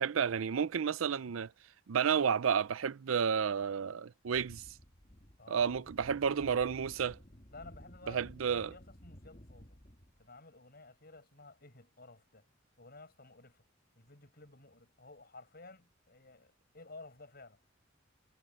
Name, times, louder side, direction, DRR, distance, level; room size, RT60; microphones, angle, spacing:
voice 1, 0.0-1.5 1.9-4.7 5.5-7.2 8.1-8.7, right 7 dB, 85° right, 0.5 m, -31 dB
sound 1, 4.2-10.3, equal, 35° left, 2.2 m, -55 dB
voice 2, 5.4-6.6 7.5-9.8 10.2-12.5 12.8-13.6 13.9-17.6, left 3 dB, 50° left, 7.6 m, -54 dB
head